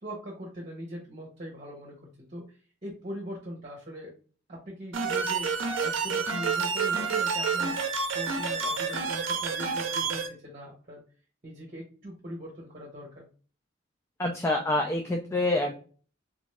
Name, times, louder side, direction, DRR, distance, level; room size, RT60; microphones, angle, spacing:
voice 1, 0.0-4.1 4.5-11.0 11.4-13.2, equal, 35° right, -2 dB, 1.0 m, -41 dB
sound 1, 4.9-10.3, right 5 dB, 65° right, 0.6 m, -29 dB
voice 2, 14.2-15.8, left 2 dB, 15° left, 2 dB, 0.3 m, -27 dB
3.5 x 2.6 x 3.2 m, 0.39 s
head